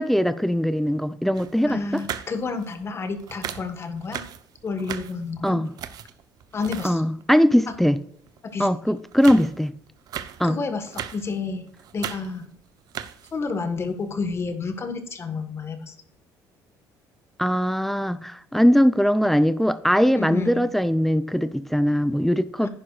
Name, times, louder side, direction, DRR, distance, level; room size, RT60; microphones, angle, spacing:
voice 1, 0.0-2.0 5.4-5.7 6.8-8.0 8.6-9.7 10.4-10.6 17.4-22.7, equal, 5° left, 15 dB, 0.5 m, -21 dB
sound 1, 1.3-2.9 3.2-7.2 7.7-7.8 8.3-8.7 9.0-11.4 11.7-12.5 12.8-13.5 14.0-14.1, right 9 dB, 60° right, 0.8 m, -37 dB
voice 2, 1.7-4.2 4.6-5.6 6.5-7.1 8.4-8.7 10.4-11.7 11.9-12.5 13.3-15.9 20.1-20.7 22.6-22.7, left 4 dB, 35° left, 8 dB, 1.4 m, -30 dB
11.0 x 9.8 x 2.4 m, 0.69 s
cardioid pair, 105°, 8 cm